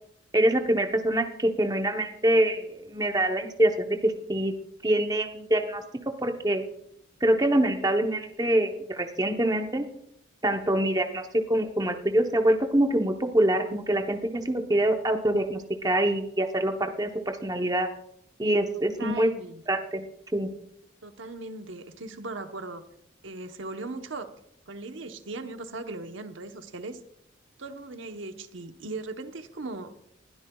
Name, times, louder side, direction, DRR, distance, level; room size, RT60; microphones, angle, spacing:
voice 1, 0.3-4.5 4.8-5.8 6.2-6.6 7.2-9.9 10.4-17.9 18.4-19.3 19.7-20.0 20.3-20.5, right 1 dB, 20° right, 4 dB, 0.8 m, -25 dB
voice 2, 19.0-19.6 21.0-22.8 23.2-24.3 24.7-27.0 27.6-29.9, right 3 dB, 75° right, 7 dB, 1.0 m, -38 dB
20.5 x 12.5 x 2.3 m, 0.73 s
head